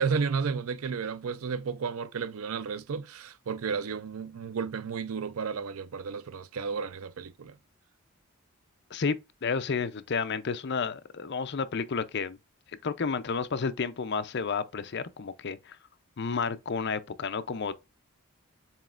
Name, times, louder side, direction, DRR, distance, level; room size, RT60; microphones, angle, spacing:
voice 1, 0.0-7.6, right 5 dB, 75° right, 0.5 m, -32 dB
voice 2, 9.4-12.4 12.8-15.8 16.2-17.7, left 5 dB, 50° left, 0.5 m, -31 dB
7.4 x 3.0 x 2.4 m
head